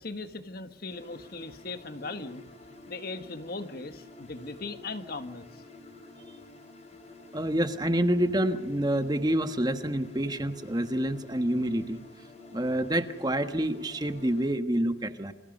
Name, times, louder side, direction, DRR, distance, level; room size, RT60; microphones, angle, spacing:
voice 1, 0.0-2.4 2.9-5.4, left 3 dB, 50° left, 9 dB, 1.6 m, -38 dB
sound 1, 0.9-14.4, left 2 dB, 35° left, 4.4 m, -50 dB
voice 2, 7.3-12.0 12.5-15.3, right 1 dB, 20° right, 8 dB, 1.3 m, -27 dB
28.0 x 27.0 x 5.4 m, 0.93 s
head